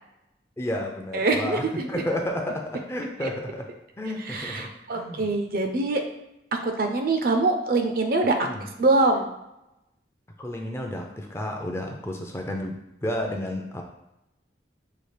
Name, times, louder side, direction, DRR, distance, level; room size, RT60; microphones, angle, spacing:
voice 1, 0.6-3.7 4.0-5.3 8.4-8.6 10.4-12.8 13.0-13.8, left 1 dB, 15° left, 1 dB, 0.5 m, -31 dB
voice 2, 1.1-1.6 4.3-6.0 6.6-8.4 8.8-9.3, right 2 dB, 50° right, 4 dB, 0.5 m, -23 dB
5.6 x 2.4 x 3.2 m, 0.88 s
head